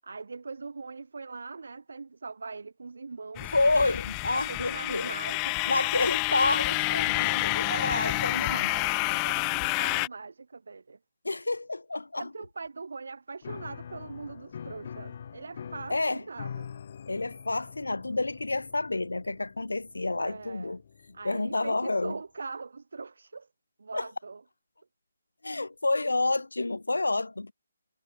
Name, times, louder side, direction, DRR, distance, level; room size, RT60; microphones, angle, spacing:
voice 1, 0.0-3.6 4.3-5.8 7.6-11.0 12.2-16.7 20.2-20.8 21.1-23.5 23.8-24.4, right 4 dB, 70° right, 7.4 m, -41 dB
sound 1, 3.4-10.1, left 40 dB or more, 20° left, 1.5 m, -29 dB
voice 2, 3.5-5.1 5.7-8.7 11.2-12.3 15.9-16.2 17.1-20.8 21.2-22.1 23.9-24.1 25.4-27.5, left 2 dB, 85° left, 1.5 m, -29 dB
Piano, 13.4-21.9, left 7 dB, 45° left, 2.0 m, -44 dB
figure-of-eight pair, 150°, 0 cm